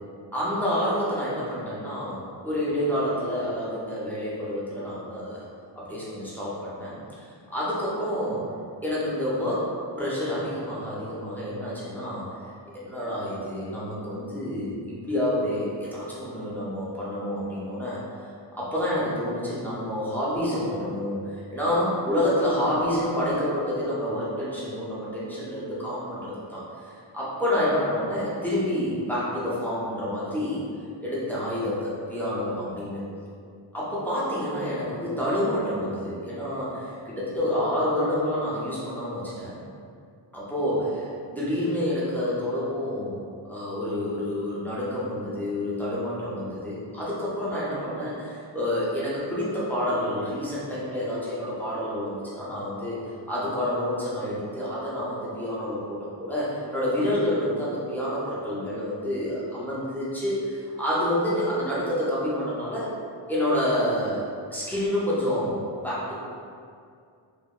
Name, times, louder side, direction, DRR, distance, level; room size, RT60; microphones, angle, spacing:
voice 1, 0.3-5.5 5.8-8.4 8.8-9.7 10.0-12.3 12.7-18.0 18.5-30.6 31.0-33.0 33.7-39.6 40.3-43.2 43.5-53.0 53.3-62.9 63.3-64.2 64.5-66.1, left 1 dB, 5° left, -9 dB, 0.4 m, -28 dB
2.8 x 2.1 x 2.2 m, 2.3 s
wide cardioid pair, 180°, 46 cm